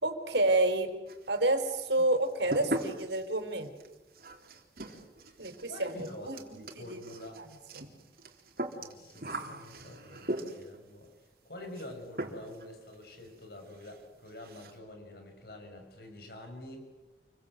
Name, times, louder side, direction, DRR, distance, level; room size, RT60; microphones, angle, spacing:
voice 1, 0.0-0.9 1.3-3.7 5.4-5.9 6.2-7.0 7.4-7.5 7.8-7.9, right 2 dB, 85° right, 7 dB, 4.3 m, -29 dB
sound 1, 1.1-1.6 1.9-10.8 11.7-11.9 12.2-12.7 12.9-13.0 13.4-13.5 13.8-14.0 14.3-14.8, right 1 dB, 55° right, 3.7 m, -40 dB
voice 2, 5.6-7.4 8.8-11.1 11.4-16.9, left 1 dB, 60° left, 4 dB, 6.6 m, -47 dB
29.0 x 23.5 x 8.1 m, 1.1 s
head